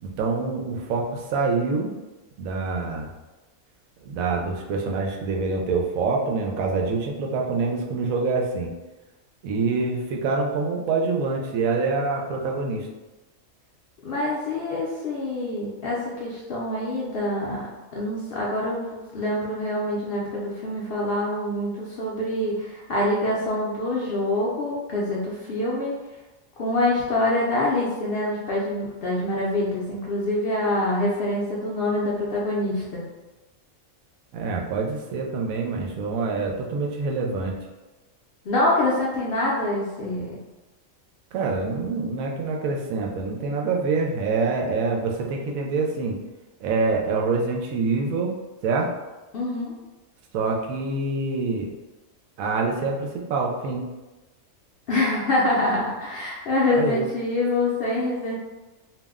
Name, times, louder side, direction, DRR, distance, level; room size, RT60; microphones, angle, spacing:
voice 1, 0.0-1.9 2.4-3.1 4.0-8.7 9.4-12.9 34.3-37.6 41.3-46.2 46.6-48.4 48.6-48.9 50.3-51.7 52.4-53.9 56.7-57.0, right 4 dB, 85° right, 0 dB, 1.0 m, -26 dB
voice 2, 14.0-17.6 17.9-25.9 26.6-33.0 38.4-40.4 49.3-49.8 54.9-58.4, left 1 dB, 60° left, -5 dB, 0.6 m, -25 dB
2.6 x 2.0 x 3.5 m, 1.1 s
omnidirectional pair, 1.4 m